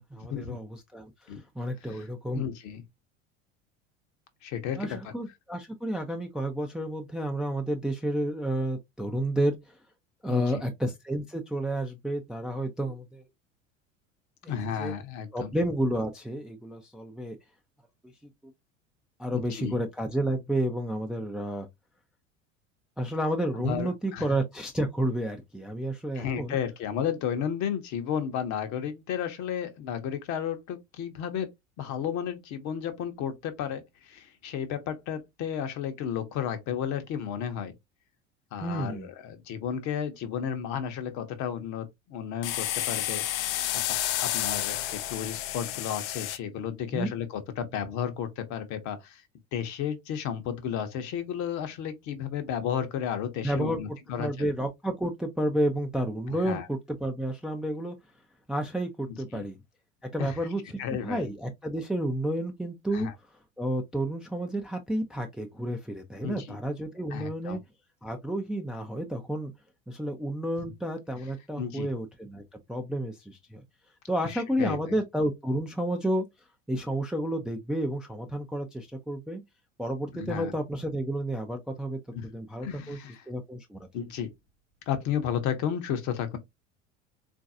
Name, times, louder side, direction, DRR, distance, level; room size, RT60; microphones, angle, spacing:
voice 1, 0.0-2.5 4.8-9.8 10.2-13.2 14.4-14.5 14.8-14.9 15.3-17.4 19.2-21.7 23.0-26.6 38.6-39.1 46.9-47.1 53.4-53.8 54.2-58.0 58.5-59.6 60.0-60.6 61.0-63.1 63.6-67.6 68.0-69.5 69.9-72.4 72.7-73.6 74.1-76.2 76.7-79.4 79.8-82.0 82.3-83.0 83.3-83.9, right 1 dB, ahead, 0.4 m, -31 dB
voice 2, 2.3-2.8 4.4-5.1 10.3-10.6 14.5-15.5 19.3-19.8 23.6-24.2 26.1-31.5 31.8-37.7 38.5-49.2 49.5-54.5 56.3-56.7 59.3-59.4 60.2-60.4 60.8-61.3 62.9-63.1 66.2-66.6 67.1-67.6 71.6-71.9 74.2-75.0 80.1-80.5 82.1-82.3 82.6-83.3 83.9-84.3 84.9-86.4, left 8 dB, 50° left, 0.9 m, -33 dB
sound 1, 42.4-46.4, left 13 dB, 65° left, 0.5 m, -30 dB
3.8 x 2.6 x 2.5 m
figure-of-eight pair, 75°, 38 cm